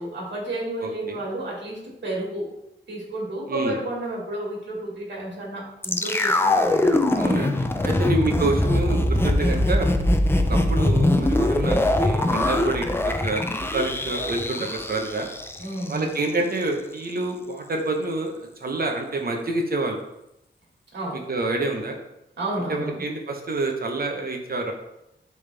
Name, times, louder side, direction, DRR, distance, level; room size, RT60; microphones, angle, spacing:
voice 1, 0.0-2.5 2.9-7.0 7.8-8.1 15.6-16.1 20.9-21.2 22.4-23.0, right 1 dB, 70° right, -3 dB, 2.5 m, -31 dB
voice 2, 3.5-3.8 7.1-9.9 10.5-13.4 13.7-15.3 15.9-20.0 21.1-22.0 22.7-24.7, right 2 dB, 55° right, 3 dB, 1.0 m, -27 dB
sound 1, 5.8-16.0 16.2-16.3, left 1 dB, 10° left, 0.5 m, -22 dB
10.5 x 3.6 x 3.4 m, 0.86 s
wide cardioid pair, 140°, 19 cm